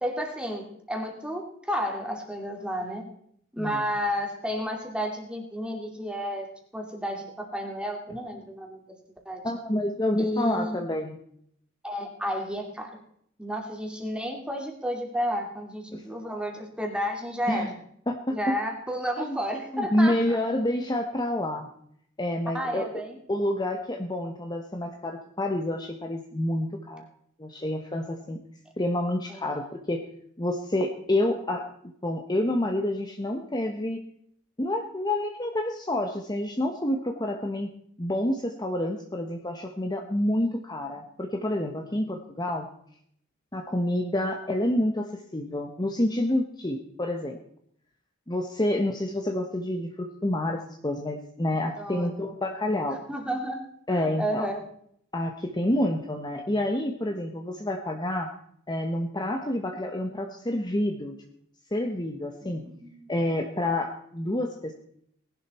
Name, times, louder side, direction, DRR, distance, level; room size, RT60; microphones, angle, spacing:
voice 1, 0.0-3.0 3.5-6.5 6.7-8.8 9.2-9.4 10.2-10.8 11.8-12.9 13.4-17.7 18.3-20.4 22.5-23.2 29.3-29.4 40.4-40.6 51.8-52.3 53.1-53.6 53.9-54.6 62.4-63.1, equal, 5° right, 2 dB, 2.7 m, -32 dB
voice 2, 9.4-11.2 15.9-16.0 17.5-17.7 18.1-18.6 19.2-19.4 19.7-21.7 22.2-22.9 23.3-27.0 27.4-28.4 28.8-30.1 30.4-31.6 32.0-34.0 34.6-37.7 38.0-42.7 43.5-47.4 48.3-53.0 53.9-54.5 55.1-58.3 58.7-61.2 61.7-62.7 63.1-64.7, left 1 dB, 20° left, 3 dB, 1.1 m, -28 dB
19.0 x 11.5 x 4.4 m, 0.68 s
head